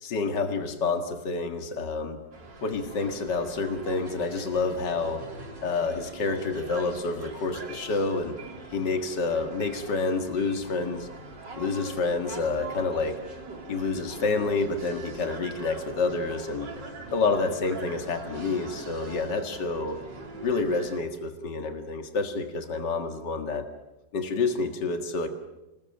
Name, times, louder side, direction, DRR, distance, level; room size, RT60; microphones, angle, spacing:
voice 1, 0.0-2.2 2.6-5.3 5.6-8.4 8.7-11.1 11.6-13.2 13.7-16.7 17.1-20.0 20.4-23.7 24.1-25.3, left 4 dB, 75° left, 6 dB, 2.5 m, -28 dB
sound 1, 2.3-21.0, right 3 dB, 90° right, 3.9 m, -42 dB
27.5 x 20.0 x 9.0 m, 0.99 s
omnidirectional pair, 1.9 m